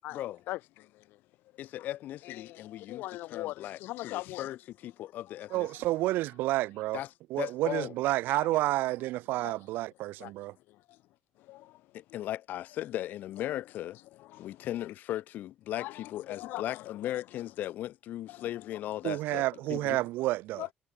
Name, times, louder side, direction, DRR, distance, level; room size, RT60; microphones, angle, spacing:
voice 1, 0.0-1.2 1.8-1.9 2.2-4.5 5.3-5.6 8.3-8.5 9.3-9.5 10.2-11.0 11.4-12.0 14.1-14.9 15.7-17.5 18.3-19.1 19.7-20.0 20.6-20.7, left 17 dB, 85° left, 4.3 m, -43 dB
voice 2, 1.6-3.0 3.3-3.8 4.0-4.6 4.8-5.7 6.9-7.1 7.4-7.9 11.9-14.0 14.4-19.4 19.7-20.0, left 13 dB, 60° left, 7.4 m, -37 dB
voice 3, 5.5-7.0 7.3-10.5 19.0-20.6, right 17 dB, 85° right, 1.9 m, -30 dB
cardioid pair, 155°, 3 cm